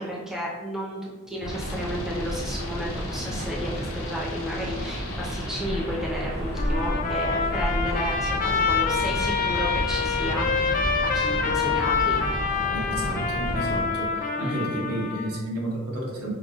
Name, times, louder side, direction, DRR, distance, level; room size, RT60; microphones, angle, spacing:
voice 1, 0.0-12.2 14.4-14.7, equal, ahead, -4 dB, 0.6 m, -33 dB
sound 1, 1.0-14.6, left 2 dB, 60° left, 0.7 m, -42 dB
sound 2, 1.4-13.9, equal, 45° right, 0.6 m, -31 dB
Trumpet, 6.6-15.4, left 5 dB, 35° left, 0.3 m, -26 dB
voice 2, 12.7-16.3, right 1 dB, 85° right, -2 dB, 1.0 m, -31 dB
5.4 x 2.3 x 2.3 m, 1.3 s
head